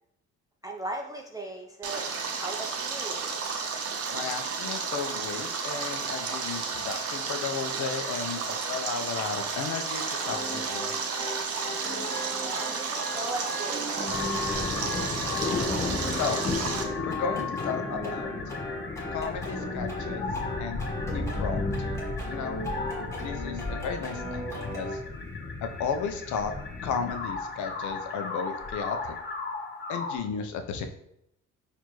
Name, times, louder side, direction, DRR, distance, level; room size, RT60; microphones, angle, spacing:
voice 1, 0.6-2.1 2.4-3.2 12.4-14.0, right 1 dB, 10° right, 0 dB, 0.4 m, -37 dB
Stream, 1.8-16.8, right 5 dB, 50° right, 0.6 m, -32 dB
voice 2, 4.1-10.9 16.2-16.4 17.0-18.3 19.1-20.3 20.6-20.8 21.1-22.0 22.3-22.6 23.2-25.0 25.6-26.5 26.8-29.2 29.9-30.9, left 6 dB, 75° left, 6 dB, 0.6 m, -34 dB
sound 1, 10.2-25.0, equal, 10° left, 1.2 m, -37 dB
sound 2, 14.1-30.2, left 4 dB, 35° left, 0.7 m, -34 dB
4.3 x 2.5 x 3.0 m, 0.77 s
cardioid pair, 90°, 30 cm